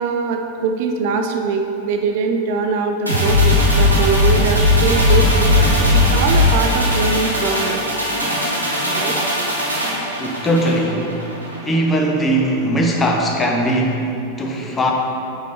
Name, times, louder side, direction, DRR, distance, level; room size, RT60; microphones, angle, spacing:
voice 1, 0.0-5.6 5.9-7.8 8.9-9.1, right 5 dB, 50° right, 4 dB, 0.4 m, -22 dB
sound 1, 3.1-11.6 11.9-12.1, left 1 dB, 80° right, 1.0 m, -18 dB
voice 2, 10.2-11.1 11.6-14.9, right 1 dB, 15° left, 0 dB, 0.8 m, -19 dB
5.1 x 5.0 x 4.2 m, 2.8 s
figure-of-eight pair, 90°, 0 cm